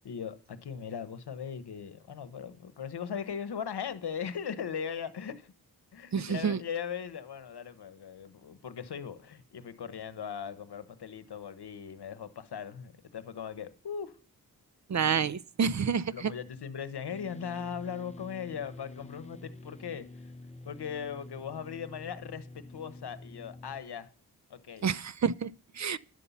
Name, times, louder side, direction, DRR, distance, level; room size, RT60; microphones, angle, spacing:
voice 1, 0.0-5.5 5.9-14.1 16.1-20.1 20.6-24.1 24.5-24.9, left 7 dB, 80° left, 0.9 m, -39 dB
voice 2, 6.1-6.6 14.9-16.3 24.8-26.0, right 6 dB, 45° right, 0.5 m, -29 dB
sound 1, 17.1-23.8, left 2 dB, 15° left, 0.8 m, -48 dB
10.5 x 5.4 x 7.0 m
cardioid pair, 45°, 39 cm